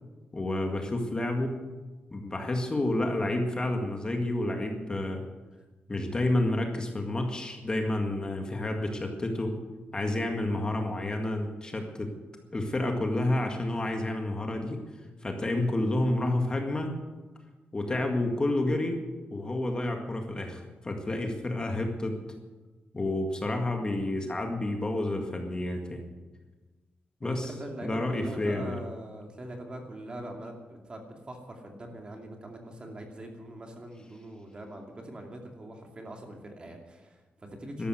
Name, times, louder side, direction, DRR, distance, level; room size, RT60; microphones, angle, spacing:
voice 1, 0.3-1.6 2.1-5.3 5.9-9.6 9.9-12.1 12.5-14.8 15.2-16.9 17.7-19.0 19.3-22.2 22.9-26.0 27.2-27.5 27.8-28.8 37.8-37.9, left 1 dB, 20° left, 3 dB, 1.9 m, -29 dB
voice 2, 27.2-37.9, right 1 dB, 25° right, 3 dB, 2.5 m, -42 dB
13.0 x 12.5 x 7.9 m, 1.2 s
wide cardioid pair, 145°, 4 cm